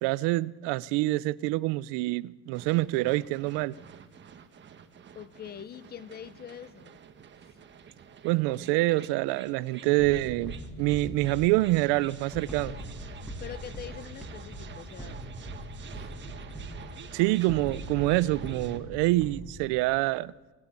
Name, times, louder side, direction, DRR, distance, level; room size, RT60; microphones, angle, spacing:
voice 1, 0.0-3.7 8.2-12.7 17.1-20.3, right 19 dB, 80° right, 0.7 m, -26 dB
sound 1, 2.5-18.8, right 7 dB, 25° right, 1.3 m, -49 dB
voice 2, 5.1-7.0 7.4-7.6 13.4-15.2 15.9-16.1, left 9 dB, 25° left, 0.7 m, -44 dB
sound 2, 10.0-19.9, equal, ahead, 2.2 m, -41 dB
24.0 x 17.5 x 8.3 m
cardioid pair, 175°, 41 cm